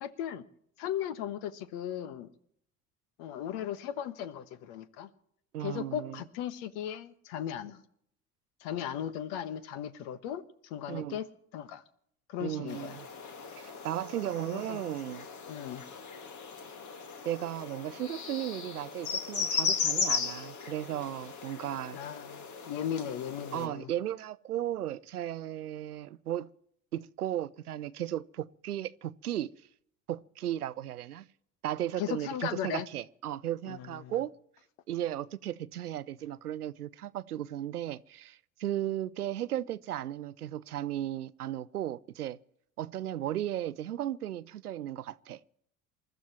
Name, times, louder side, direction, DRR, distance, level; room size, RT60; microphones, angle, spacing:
voice 1, 0.0-0.4 0.8-2.3 3.2-5.1 5.6-7.8 8.6-11.3 11.5-11.8 12.3-13.0 14.5-14.8 15.5-15.8 21.9-23.9 32.0-32.9 33.7-34.1, left 10 dB, 55° left, 1.3 m, -37 dB
voice 2, 5.5-6.2 10.9-11.2 12.4-13.1 13.6-15.2 17.2-22.0 23.5-26.5 26.9-29.5 30.1-31.2 31.6-34.3 34.9-42.4 42.8-45.4, right 12 dB, 80° right, 0.6 m, -35 dB
sound 1, 12.7-23.7, left 5 dB, 40° left, 2.1 m, -36 dB
28.0 x 13.5 x 3.0 m
figure-of-eight pair, 60°, 44 cm